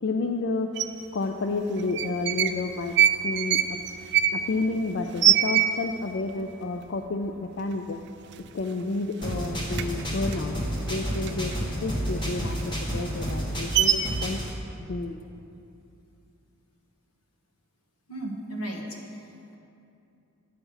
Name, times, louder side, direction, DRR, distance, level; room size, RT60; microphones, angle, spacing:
voice 1, 0.0-0.7 1.1-2.9 3.2-3.8 4.3-8.0 8.5-11.5 11.8-14.4 14.9-15.2, left 3 dB, 55° left, 4 dB, 0.4 m, -30 dB
sound 1, 0.8-0.9 1.8-2.6 2.9-6.1 6.4-6.5 6.8-7.3 7.7-7.9 8.2-9.0 9.2-11.6 12.0-14.3, right 10 dB, 50° right, 0.4 m, -24 dB
sound 2, 9.2-14.5, equal, 20° left, 1.1 m, -30 dB
voice 2, 18.1-19.6, right 1 dB, 80° left, 0 dB, 1.4 m, -36 dB
10.0 x 7.0 x 5.5 m, 2.7 s
head